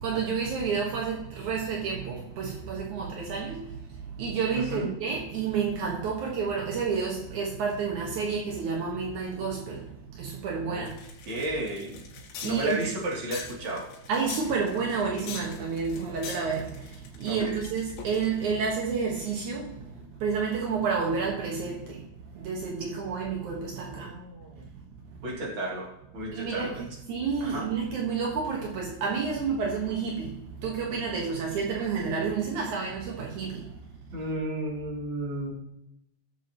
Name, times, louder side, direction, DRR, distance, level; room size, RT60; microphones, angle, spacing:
voice 1, 0.0-3.6 4.2-9.8 10.2-10.9 12.4-12.8 14.1-16.7 17.2-19.7 20.2-22.0 22.4-24.1 26.3-26.7 27.1-30.3 30.6-33.6, right 5 dB, 80° right, -1 dB, 1.7 m, -30 dB
voice 2, 4.5-4.9 10.7-10.8 11.3-12.0 12.4-13.9 17.3-17.6 23.8-24.7 25.2-26.9 27.4-27.6 34.1-35.5, right 1 dB, 30° right, -4 dB, 2.7 m, -33 dB
sound 1, 10.9-18.5, left 6 dB, 90° left, 4.6 m, -43 dB
19.5 x 7.5 x 3.0 m, 0.83 s
omnidirectional pair, 5.8 m